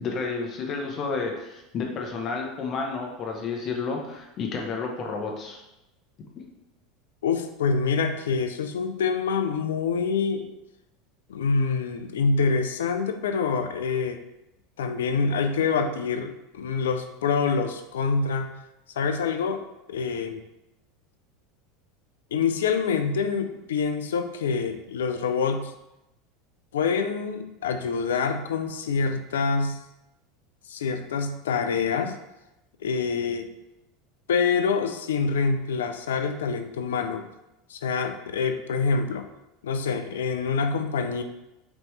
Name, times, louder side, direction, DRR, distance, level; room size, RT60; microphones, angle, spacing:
voice 1, 0.0-5.6, left 4 dB, 45° left, 1 dB, 1.0 m, -31 dB
voice 2, 7.2-10.5 11.3-14.2 14.8-18.5 19.0-19.6 19.9-20.4 22.3-25.7 26.7-29.8 30.7-32.2 32.8-33.5 34.3-37.3 37.7-39.3 39.6-41.2, left 5 dB, 85° left, 8 dB, 0.4 m, -26 dB
5.2 x 3.0 x 3.2 m, 0.92 s
hypercardioid pair, 90°, 0 cm